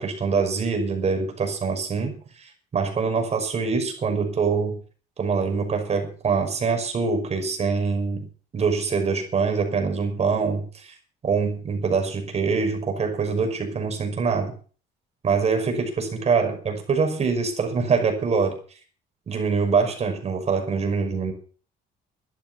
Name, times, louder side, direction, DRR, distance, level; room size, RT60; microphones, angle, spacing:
voice 1, 0.0-4.8 5.2-8.3 8.5-10.9 11.2-14.6 15.2-18.6 19.3-21.3, right 5 dB, 40° right, 4 dB, 5.7 m, -24 dB
13.5 x 11.0 x 6.9 m, 0.41 s
cardioid pair, 110°, 17 cm